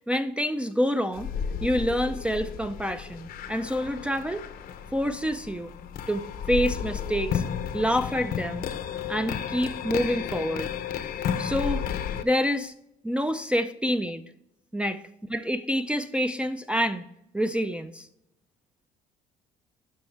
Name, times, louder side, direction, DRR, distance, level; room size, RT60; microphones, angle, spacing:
voice 1, 0.0-1.3 1.6-4.5 4.9-5.7 6.1-7.4 7.7-8.7 9.1-10.7 11.4-11.9 12.2-12.7 13.0-14.2 14.7-17.0 17.3-18.1, equal, 5° right, 6 dB, 0.4 m, -27 dB
sound 1, 1.1-12.2, left 8 dB, 60° left, 0.7 m, -33 dB
12.0 x 4.3 x 3.2 m, 0.82 s
cardioid pair, 110°, 17 cm